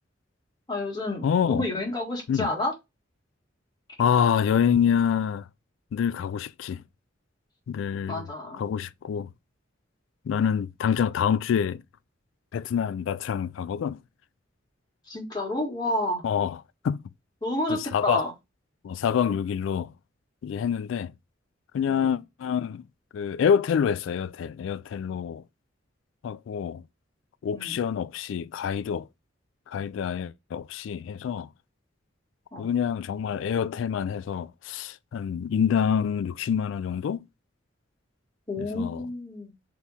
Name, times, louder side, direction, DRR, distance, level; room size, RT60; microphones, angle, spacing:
voice 1, 0.7-2.7 8.1-8.6 15.1-16.3 17.4-18.3 27.5-27.8 32.5-32.7 38.5-39.5, left 1 dB, 20° left, 1.7 m, -30 dB
voice 2, 1.2-1.6 2.3-2.5 4.0-5.5 5.9-6.8 7.7-8.2 8.6-9.3 10.3-11.8 12.5-14.0 16.2-16.6 16.8-17.0 17.7-18.2 18.8-19.9 20.4-21.1 21.7-22.8 23.1-25.4 26.2-26.8 27.4-29.1 29.7-31.5 32.6-37.3 38.6-39.0, left 7 dB, 80° left, 0.3 m, -26 dB
3.5 x 3.0 x 4.1 m
head